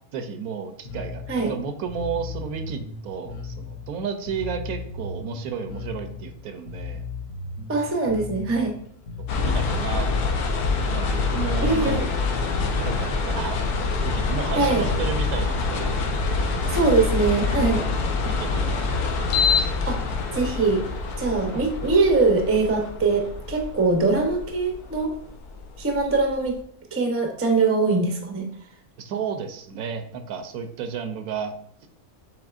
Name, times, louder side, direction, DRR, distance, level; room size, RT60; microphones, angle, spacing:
voice 1, 0.1-7.0 9.4-12.1 12.8-13.6 14.0-16.0 16.6-16.8 18.2-19.7 21.5-21.6 29.0-31.5, right 6 dB, 75° right, 7 dB, 1.0 m, -33 dB
Bass guitar, 0.8-10.3, left 3 dB, 65° left, 0.9 m, -36 dB
voice 2, 7.7-8.7 11.6-12.1 14.5-14.8 16.6-17.9 19.8-20.0 20.3-20.8 21.2-25.1 25.8-26.6 26.9-28.5, right 3 dB, 20° right, 2 dB, 0.3 m, -22 dB
sound 1, 9.3-26.4, left 4 dB, 90° left, 1.3 m, -26 dB
7.0 x 3.1 x 2.4 m, 0.66 s
omnidirectional pair, 1.6 m